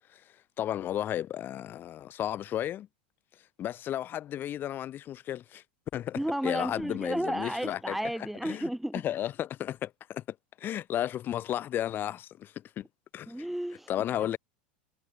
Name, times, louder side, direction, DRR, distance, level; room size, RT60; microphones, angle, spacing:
voice 1, 0.6-2.9 3.6-5.6 5.9-8.0 8.4-10.2 10.6-12.9 13.1-13.3 13.9-14.4, left 11 dB, 40° left, 5.7 m, -33 dB
voice 2, 6.1-9.0 13.3-14.3, right 1 dB, 5° right, 2.4 m, -33 dB
hypercardioid pair, 95°, 6 cm